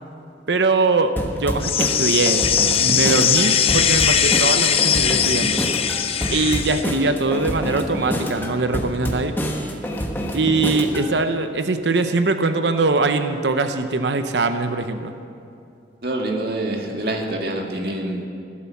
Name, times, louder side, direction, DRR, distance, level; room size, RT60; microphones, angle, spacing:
voice 1, 0.5-2.5 2.8-5.6 6.3-9.7 10.3-15.1, right 3 dB, 85° right, 9 dB, 0.8 m, -22 dB
sound 1, 1.2-11.1, equal, 10° left, 1.2 m, -27 dB
sound 2, 1.6-6.8, left 8 dB, 35° left, 0.6 m, -20 dB
voice 2, 16.0-18.3, right 1 dB, 60° right, 1 dB, 2.1 m, -26 dB
15.5 x 12.0 x 7.2 m, 2.6 s
head